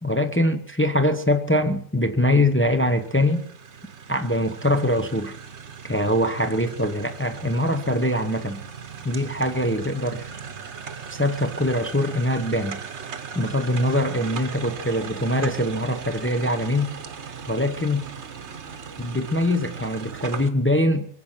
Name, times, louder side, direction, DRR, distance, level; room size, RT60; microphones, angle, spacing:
voice 1, 0.0-3.4 4.1-5.4 5.9-8.6 9.0-10.3 11.1-12.8 13.3-16.9 17.5-18.1 19.0-21.1, left 1 dB, 10° left, 0.6 m, -23 dB
sound 1, 2.5-20.5, right 6 dB, 45° right, 1.2 m, -38 dB
23.5 x 7.9 x 7.4 m
omnidirectional pair, 1.9 m